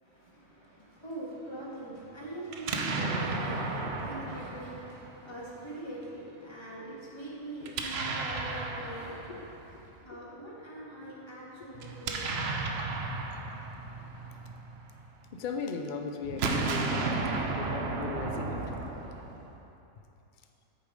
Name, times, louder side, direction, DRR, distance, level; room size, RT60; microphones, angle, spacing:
voice 1, 0.0-9.4 9.8-12.4, right 1 dB, 20° left, -6 dB, 1.8 m, -43 dB
Explosion, 2.5-5.5 7.6-9.9 11.7-15.2 16.2-19.6, right 3 dB, 55° right, 0.9 m, -34 dB
voice 2, 9.2-9.8 11.6-11.7 12.2-12.3 12.7-13.0 13.3-13.4 15.3-18.8, left 5 dB, 85° left, 5 dB, 0.4 m, -39 dB
8.6 x 6.7 x 5.0 m, 2.8 s
omnidirectional pair, 1.5 m